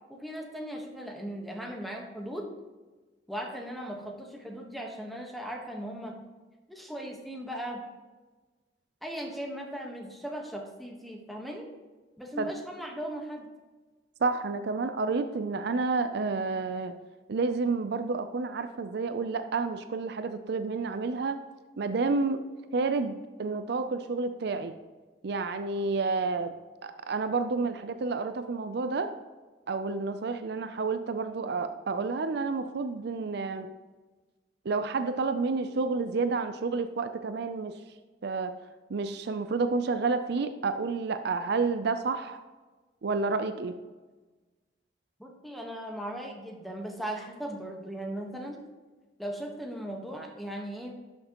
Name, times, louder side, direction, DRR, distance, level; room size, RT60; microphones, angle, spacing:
voice 1, 0.1-2.5 3.3-6.2 6.7-7.8 9.0-11.7 12.2-13.5 45.2-48.6 49.2-51.0, right 1 dB, ahead, 1 dB, 1.2 m, -38 dB
voice 2, 14.2-17.0 17.3-21.4 21.8-22.4 22.7-24.7 25.2-26.5 26.8-29.1 29.7-33.7 34.6-37.8 38.2-38.5 38.9-42.4 43.0-43.8, right 4 dB, 65° right, 10 dB, 0.5 m, -30 dB
11.5 x 6.5 x 3.0 m, 1.3 s
head